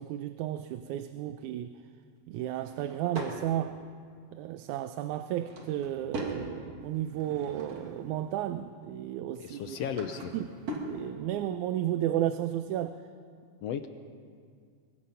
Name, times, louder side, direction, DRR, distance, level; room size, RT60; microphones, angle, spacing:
voice 1, 0.0-1.8 2.3-3.8 4.3-9.8 10.3-10.5 10.8-13.0, right 12 dB, 85° right, 10 dB, 2.1 m, -33 dB
Drawer open or close / Wood, 2.4-3.4 5.1-6.4 6.9-8.1 9.4-10.9, right 2 dB, 65° right, 3.7 m, -41 dB
voice 2, 9.4-10.3 13.6-13.9, left 8 dB, 70° left, 8 dB, 1.7 m, -35 dB
23.5 x 23.0 x 5.6 m, 2.1 s
omnidirectional pair, 3.4 m